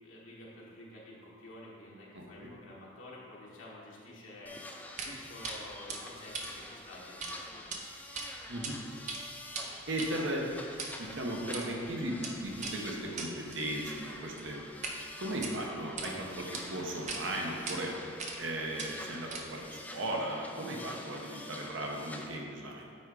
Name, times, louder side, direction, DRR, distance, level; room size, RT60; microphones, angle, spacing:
voice 1, 0.0-4.6 5.0-7.8, left 1 dB, 85° left, -5 dB, 1.3 m, -50 dB
voice 2, 2.1-2.5 8.5-8.8 9.9-10.4 11.0-14.6 15.2-17.9 18.4-22.9, right 1 dB, 70° right, -1 dB, 1.0 m, -36 dB
sound 1, 4.5-22.3, left 1 dB, 10° left, 0.4 m, -47 dB
sound 2, 5.0-5.1 5.4-5.6 5.9-7.3 7.6-7.8 8.1-8.7 9.0-15.0 15.3-16.1 16.5-16.6 17.1-17.2 17.7-17.8 18.2-18.5 18.8-19.7, right 4 dB, 35° right, 0.6 m, -41 dB
8.5 x 3.6 x 4.9 m, 2.4 s
head